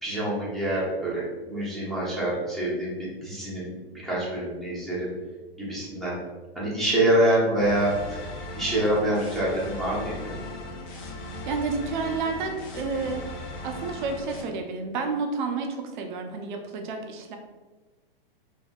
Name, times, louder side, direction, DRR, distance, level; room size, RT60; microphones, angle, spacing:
voice 1, 0.0-5.1 5.6-6.2 6.5-8.3 8.5-10.4, right 1 dB, ahead, -9 dB, 0.9 m, -26 dB
sound 1, 7.6-14.4, left 1 dB, 30° left, 0.5 m, -38 dB
voice 2, 11.4-13.3 13.6-17.4, right 4 dB, 55° right, 4 dB, 0.5 m, -30 dB
3.5 x 2.7 x 2.3 m, 1.2 s
hypercardioid pair, 145°, 30 cm